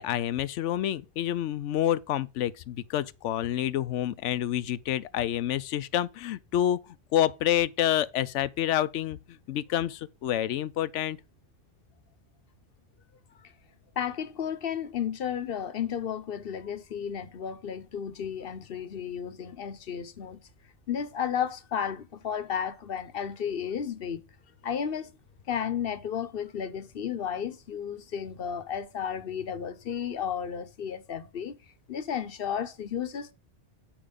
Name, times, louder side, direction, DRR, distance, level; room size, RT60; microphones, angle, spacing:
voice 1, 0.0-6.8 7.1-11.2, left 12 dB, 90° left, 0.9 m, -28 dB
voice 2, 14.0-20.4 20.9-24.2 24.6-25.1 25.5-31.6 31.9-33.3, left 8 dB, 55° left, 1.0 m, -33 dB
8.9 x 4.8 x 5.1 m
omnidirectional pair, 1.2 m